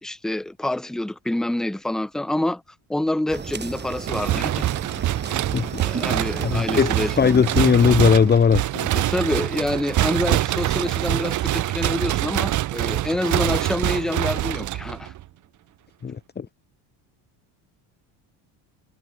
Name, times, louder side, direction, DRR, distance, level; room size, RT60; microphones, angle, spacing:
voice 1, 0.0-2.6 2.9-4.7 5.8-7.5 8.9-15.1, left 1 dB, ahead, 0.8 m, -27 dB
sound 1, 3.3-8.4, right 5 dB, 25° right, 4.9 m, -34 dB
sound 2, 4.0-15.2, right 14 dB, 45° right, 0.8 m, -25 dB
voice 2, 5.5-8.9 16.0-16.5, left 6 dB, 20° left, 1.6 m, -20 dB
cardioid pair, 145°, 44 cm